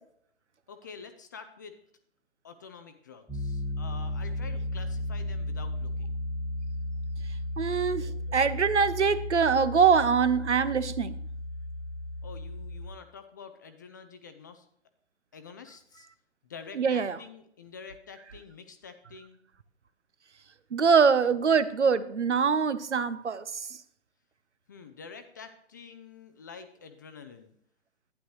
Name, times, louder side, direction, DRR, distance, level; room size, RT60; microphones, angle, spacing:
voice 1, 0.7-1.8 2.4-6.2 12.2-14.7 15.3-16.1 16.4-19.4 24.7-27.5, left 5 dB, 20° left, 8 dB, 0.4 m, -47 dB
Piano, 3.3-12.9, left 1 dB, ahead, 1.3 m, -34 dB
voice 2, 7.6-11.2 16.8-17.2 20.7-23.7, right 6 dB, 80° right, 16 dB, 0.8 m, -24 dB
11.5 x 9.8 x 3.1 m, 0.69 s
figure-of-eight pair, 125°, 35 cm